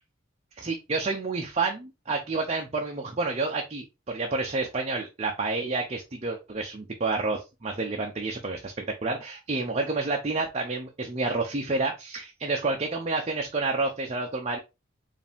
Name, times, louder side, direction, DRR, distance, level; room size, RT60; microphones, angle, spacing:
voice 1, 0.6-14.6, right 3 dB, 30° right, 1 dB, 0.6 m, -29 dB
4.8 x 2.7 x 3.5 m, 0.26 s
head